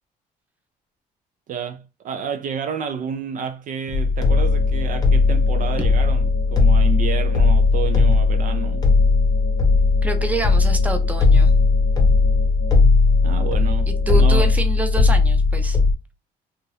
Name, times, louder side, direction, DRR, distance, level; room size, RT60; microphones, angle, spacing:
voice 1, 1.5-8.9 13.2-14.5, right 7 dB, 50° right, 0.4 m, -30 dB
sound 1, 3.9-15.9, left 4 dB, 25° left, 0.8 m, -17 dB
sound 2, 4.2-14.5, left 4 dB, 80° left, 0.7 m, -38 dB
voice 2, 10.0-11.5 13.9-15.8, right 3 dB, 10° right, 0.6 m, -27 dB
2.8 x 2.4 x 3.1 m
cardioid pair, 110°, 17 cm